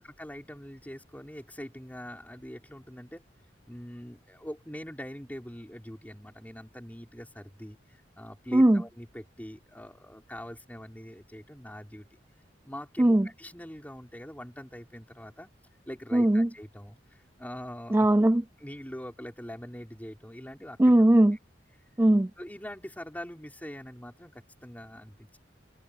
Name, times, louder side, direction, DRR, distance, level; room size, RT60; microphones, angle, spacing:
voice 1, 0.0-3.2 3.7-12.2 12.6-15.5 15.9-18.1 18.6-20.8 22.4-25.4, equal, 10° left, 5.1 m, -43 dB
voice 2, 16.1-16.5 17.9-18.4 20.8-21.4 22.0-22.3, right 1 dB, 10° right, 0.4 m, -20 dB
head